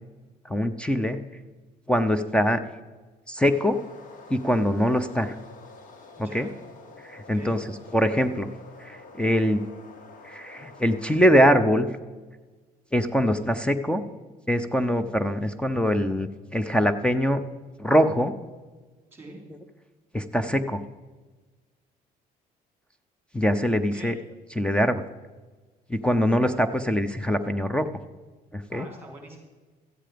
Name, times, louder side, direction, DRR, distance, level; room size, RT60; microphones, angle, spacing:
voice 1, 0.4-1.2 1.9-2.6 3.3-3.8 4.3-5.4 6.2-6.5 7.1-7.6 7.9-8.5 8.8-9.6 10.2-11.9 12.9-14.0 14.5-17.4 17.8-18.3 20.1-20.8 23.3-24.2 24.5-25.0 25.9-27.9 28.5-28.9, equal, 5° left, 10 dB, 0.6 m, -23 dB
sound 1, 3.4-11.5, left 3 dB, 50° left, 1.6 m, -48 dB
voice 2, 6.2-6.5 7.3-7.5 19.1-19.4 23.7-24.1 28.7-29.4, right 2 dB, 15° right, 1 dB, 3.8 m, -44 dB
13.5 x 8.8 x 5.1 m, 1.3 s
cardioid pair, 110°, 17 cm